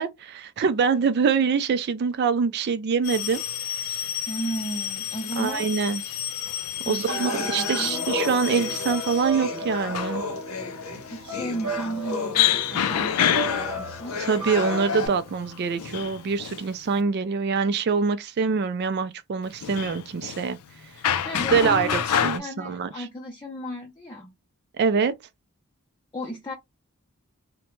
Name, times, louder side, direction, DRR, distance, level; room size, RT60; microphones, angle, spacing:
voice 1, 0.0-3.4 5.4-6.0 6.9-10.2 14.2-20.6 21.5-23.0 24.8-25.1, right 5 dB, 45° right, 0.3 m, -24 dB
Male speech man speaking, 3.0-17.0 19.5-22.4, left 10 dB, 85° left, 0.4 m, -29 dB
voice 2, 4.3-5.7 6.8-8.1 11.1-14.2 21.2-24.4 26.1-26.5, right 1 dB, 20° left, 0.6 m, -35 dB
sound 1, 7.1-15.1, left 3 dB, 65° left, 0.8 m, -32 dB
sound 2, 8.0-16.3, right 4 dB, 70° right, 0.7 m, -38 dB
2.9 x 2.1 x 3.0 m
head